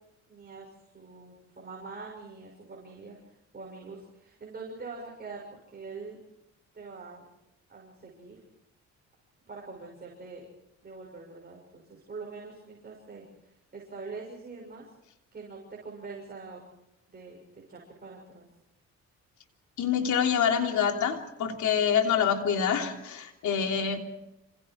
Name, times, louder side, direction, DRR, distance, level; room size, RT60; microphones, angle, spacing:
voice 1, 0.3-6.2 6.7-7.3 7.7-8.4 9.5-10.4 10.8-14.9 15.3-16.6 17.1-18.5, right 4 dB, 30° right, -2 dB, 6.8 m, -44 dB
voice 2, 19.8-24.0, left 7 dB, 75° left, 3 dB, 3.3 m, -26 dB
28.0 x 27.0 x 4.7 m, 0.89 s
cardioid pair, 90°, 30 cm